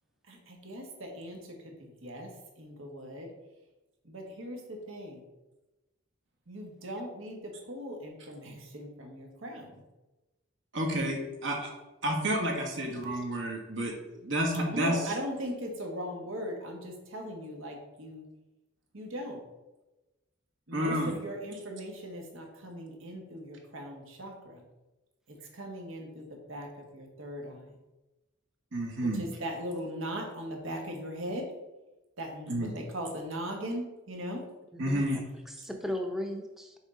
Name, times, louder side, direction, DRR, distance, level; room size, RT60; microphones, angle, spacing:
voice 1, 0.3-2.3 2.6-3.3 4.0-5.3 6.5-9.7 14.7-18.2 18.9-19.4 20.7-24.6 25.3-27.8 29.0-31.5 32.2-34.4, equal, 85° right, 2 dB, 1.4 m, -39 dB
voice 2, 10.7-11.7 12.0-13.9 14.2-14.9 20.7-21.2 28.7-29.2 32.5-32.7 34.8-35.2, right 1 dB, 65° right, 1 dB, 1.4 m, -30 dB
voice 3, 34.7-36.8, left 1 dB, ahead, 3 dB, 0.6 m, -37 dB
6.3 x 4.6 x 3.8 m, 1.1 s
head